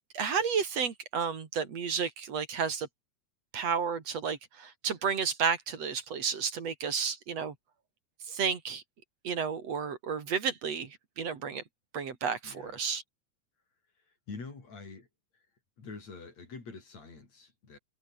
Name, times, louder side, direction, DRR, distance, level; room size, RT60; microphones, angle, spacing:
voice 1, 0.1-2.9 3.5-7.6 8.3-8.8 9.2-11.6 11.9-13.0, right 6 dB, 60° right, 3.6 m, -32 dB
voice 2, 12.4-12.8 14.3-15.1 15.8-17.8, left 4 dB, 65° left, 6.6 m, -45 dB
omnidirectional pair, 3.3 m